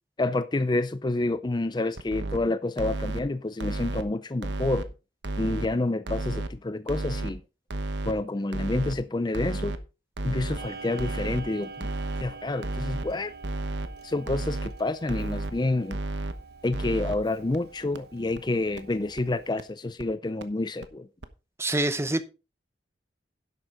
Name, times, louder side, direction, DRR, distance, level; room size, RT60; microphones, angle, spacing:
voice 1, 0.2-4.9 5.4-7.4 8.0-9.7 10.2-11.9 12.2-13.3 14.0-16.0 16.6-21.1, left 2 dB, 25° left, 0.5 m, -28 dB
sound 1, 2.0-2.4 2.8-3.2 3.6-4.0 4.4-4.8 5.2-5.7 6.1-6.5 6.9-7.3 7.7-8.1 8.5-8.9 9.3-9.8 10.2-10.6 11.0-11.4 11.8-12.2 12.6-13.1 13.4-13.9 14.3-14.7 15.1-15.5 15.9-16.3 16.7-17.1 17.5-17.6 18.0-18.1 18.4-18.5 18.8-18.9 19.2-19.3 19.6-19.7 20.0-20.1 20.4-20.5 20.8-20.9 21.2-21.3, right 2 dB, 80° right, 1.1 m, -31 dB
Clock, 10.6-19.5, right 4 dB, 60° right, 1.2 m, -45 dB
voice 2, 21.6-22.2, right 1 dB, 15° right, 0.8 m, -25 dB
11.0 x 8.0 x 3.9 m
head